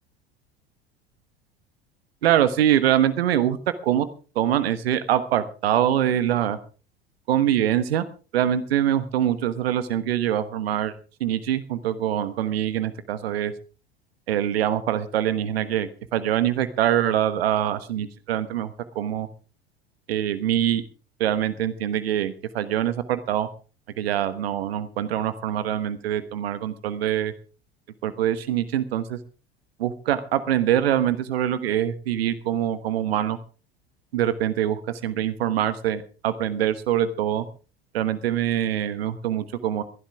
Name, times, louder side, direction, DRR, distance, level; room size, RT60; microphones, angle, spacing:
voice 1, 2.2-3.6 3.8-4.1 4.3-6.6 7.3-8.0 8.3-10.9 11.2-13.5 14.3-19.3 20.1-20.8 21.2-23.5 24.0-27.3 28.0-29.2 29.8-33.4 34.1-37.5 37.9-39.8, right 11 dB, 75° right, 13 dB, 1.3 m, -24 dB
21.5 x 11.5 x 3.6 m, 0.35 s
hypercardioid pair, 75°, 31 cm